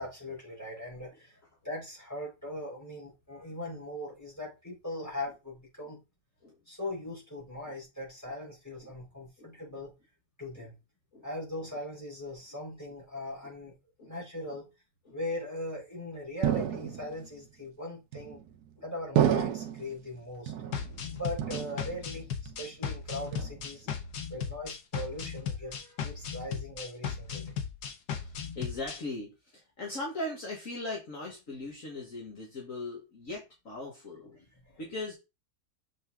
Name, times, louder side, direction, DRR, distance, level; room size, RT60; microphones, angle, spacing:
voice 1, 0.0-1.4 1.6-6.0 6.7-9.9 10.4-10.7 11.2-13.8 14.1-14.7 15.1-18.4 18.8-20.5 21.1-23.9 24.3-27.4 34.7-34.8, left 1 dB, 10° left, -3 dB, 4.7 m, -40 dB
sound 1, 16.4-17.3 18.1-18.6 19.2-20.0 20.5-21.1 21.4-22.2 22.5-22.9 23.3-23.9, right 10 dB, 75° right, 1.3 m, -30 dB
sound 2, 20.7-29.0, left 7 dB, 80° left, 1.5 m, -37 dB
voice 2, 28.2-34.4 34.8-35.1, left 2 dB, 55° left, -1 dB, 2.0 m, -39 dB
6.9 x 5.8 x 3.7 m, 0.26 s
omnidirectional pair, 1.7 m